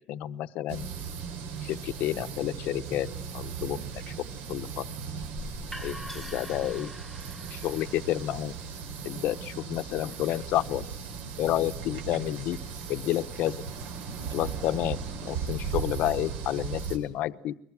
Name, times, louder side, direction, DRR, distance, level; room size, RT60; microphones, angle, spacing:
voice 1, 0.1-0.9 1.6-3.1 3.3-4.1 4.5-4.9 5.8-6.9 7.5-8.5 9.0-10.9 11.4-12.6 12.9-13.5 14.3-15.0 15.2-17.5, left 14 dB, 55° left, 12 dB, 0.9 m, -30 dB
sound 1, 0.7-17.0, right 6 dB, 65° right, 4.5 m, -37 dB
sound 2, 5.2-11.0, left 2 dB, ahead, 1.7 m, -45 dB
23.0 x 21.0 x 9.0 m, 0.70 s
cardioid pair, 160°, 3 cm